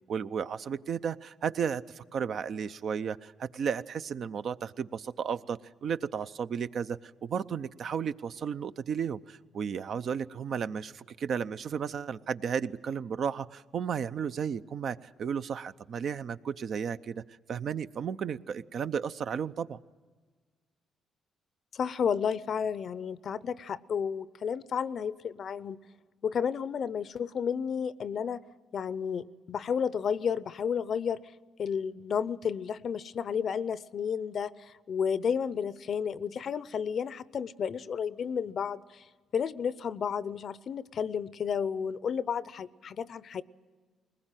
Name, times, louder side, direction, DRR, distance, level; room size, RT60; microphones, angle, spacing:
voice 1, 0.1-17.2 17.5-19.8, right 7 dB, 60° right, 12 dB, 0.6 m, -33 dB
voice 2, 21.7-25.8 26.2-28.4 28.7-31.2 31.6-39.1 39.3-43.4, left 7 dB, 55° left, 18 dB, 0.6 m, -32 dB
21.0 x 20.0 x 9.0 m, 1.4 s
cardioid pair, 90°, 0 cm